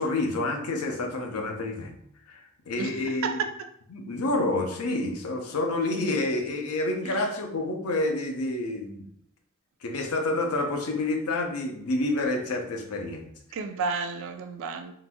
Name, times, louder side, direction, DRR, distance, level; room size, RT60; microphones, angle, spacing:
voice 1, 0.0-1.9 2.3-3.4 3.9-9.1 9.8-13.3, left 2 dB, 80° left, 3 dB, 0.6 m, -28 dB
voice 2, 2.8-3.5 7.0-7.2 13.5-14.9, right 5 dB, 65° right, 8 dB, 0.3 m, -32 dB
3.8 x 2.6 x 2.2 m, 0.71 s
head